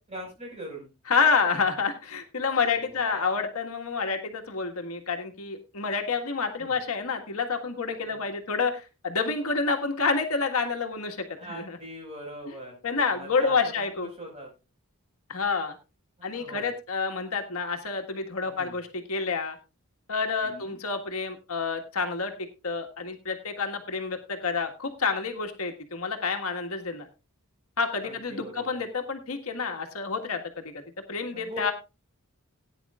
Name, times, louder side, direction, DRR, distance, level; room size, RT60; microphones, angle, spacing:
voice 1, 0.1-0.9 2.7-3.4 6.6-6.8 8.1-8.2 11.3-12.8 13.1-14.5 16.2-16.7 18.4-18.8 20.4-20.8 28.0-28.8 31.3-31.7, right 1 dB, 30° right, 0 dB, 5.2 m, -42 dB
voice 2, 1.1-11.8 12.8-14.1 15.3-15.7 16.2-19.6 20.1-22.3 22.6-27.1 27.8-30.8 31.1-31.7, left 5 dB, 75° left, 4 dB, 1.7 m, -28 dB
18.0 x 9.8 x 2.4 m, 0.29 s
head